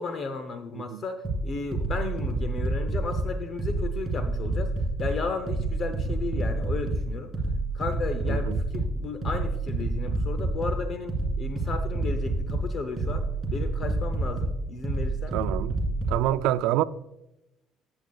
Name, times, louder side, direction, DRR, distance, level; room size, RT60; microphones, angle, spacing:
voice 1, 0.0-4.7 5.0-7.3 7.7-13.3 13.5-15.4, left 4 dB, 35° left, 0.7 m, -34 dB
sound 1, 1.2-16.3, right 2 dB, 30° right, 2.2 m, -28 dB
voice 2, 8.3-8.6 15.3-15.8 16.1-16.8, right 14 dB, 85° right, 0.4 m, -27 dB
14.5 x 7.8 x 2.3 m
cardioid pair, 170°, 0 cm